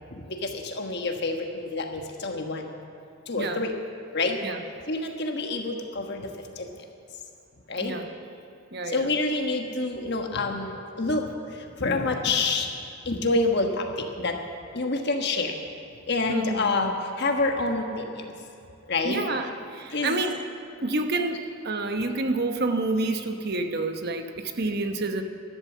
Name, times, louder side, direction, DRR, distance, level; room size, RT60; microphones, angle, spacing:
voice 1, 0.1-2.7 3.3-3.7 4.1-4.4 4.9-6.3 6.6-6.8 7.7-8.0 8.8-12.8 13.0-14.4 14.7-15.6 16.1-18.3 18.9-19.2 19.9-20.3, left 3 dB, 50° left, 3 dB, 1.3 m, -27 dB
voice 2, 3.4-3.7 4.4-4.6 7.8-8.1 8.7-9.1 16.3-16.7 19.0-20.4 20.8-25.2, right 2 dB, 45° right, 6 dB, 0.9 m, -28 dB
13.0 x 12.0 x 7.3 m, 2.6 s
head